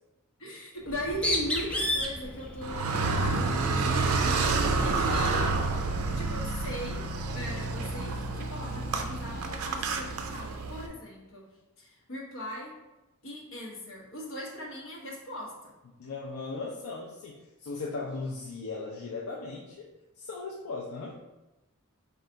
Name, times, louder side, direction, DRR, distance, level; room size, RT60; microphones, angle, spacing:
voice 1, 0.4-5.6 6.1-11.4 11.8-12.7 13.2-15.7, equal, 65° left, -2 dB, 1.0 m, -39 dB
Bird, 0.8-5.7, left 1 dB, 5° left, 0.4 m, -34 dB
Car, 2.6-10.9, right 3 dB, 80° right, 0.4 m, -29 dB
voice 2, 16.0-19.9 20.2-21.2, left 3 dB, 85° left, -2 dB, 0.5 m, -37 dB
4.4 x 2.4 x 3.8 m, 1.0 s
head